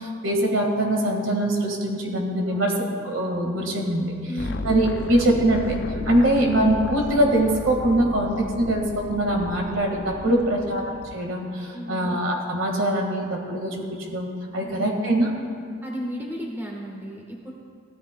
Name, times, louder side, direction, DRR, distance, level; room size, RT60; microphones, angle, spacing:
voice 1, 0.0-2.7 3.0-4.1 4.6-5.8 6.1-10.8 11.1-15.3, right 1 dB, 75° right, 1 dB, 1.7 m, -23 dB
voice 2, 4.3-4.7 10.2-10.7 11.7-12.2 14.6-15.0 15.8-17.5, equal, 10° right, -2 dB, 1.2 m, -34 dB
sound 1, 4.4-11.2, left 4 dB, 55° left, 0.4 m, -35 dB
16.5 x 13.5 x 2.2 m, 2.2 s
head